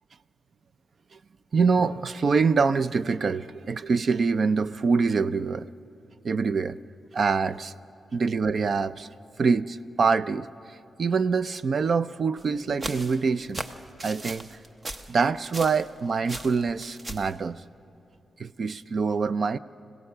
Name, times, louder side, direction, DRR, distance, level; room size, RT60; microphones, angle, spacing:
voice 1, 1.5-5.7 6.2-6.8 7.1-7.7 8.1-9.1 9.4-13.6 14.0-14.6 15.1-17.6 18.4-19.6, right 5 dB, 50° right, 15 dB, 0.5 m, -25 dB
sound 1, 12.4-16.0 16.3-17.3, right 1 dB, 25° right, 0.8 m, -38 dB
26.0 x 16.5 x 6.7 m, 2.9 s
wide cardioid pair, 130°, 0 cm